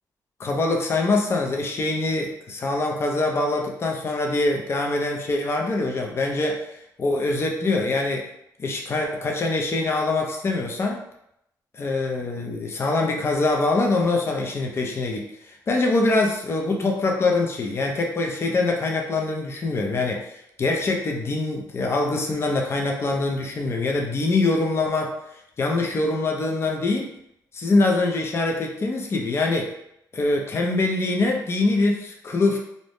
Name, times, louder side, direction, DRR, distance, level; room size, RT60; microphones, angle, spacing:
voice 1, 0.4-6.7 7.0-8.3 8.6-11.0 11.7-25.1 25.6-27.1 27.5-29.7 30.1-32.6, left 2 dB, 40° left, 1 dB, 0.5 m, -24 dB
2.6 x 2.0 x 3.3 m, 0.78 s
cardioid pair, 110°, 7 cm